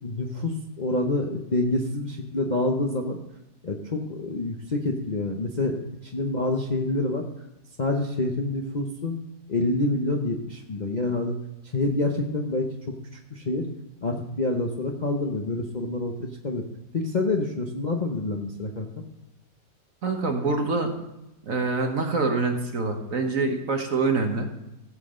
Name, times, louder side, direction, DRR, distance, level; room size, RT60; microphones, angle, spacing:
voice 1, 0.0-3.2 3.6-7.2 7.8-9.2 9.5-11.3 11.7-12.7 13.3-13.7 14.0-16.6 16.9-18.9, left 2 dB, 35° left, 1 dB, 0.7 m, -27 dB
voice 2, 20.0-20.9 21.4-24.5, right 3 dB, 50° right, 4 dB, 1.6 m, -25 dB
16.0 x 7.5 x 3.8 m, 0.91 s
omnidirectional pair, 1.9 m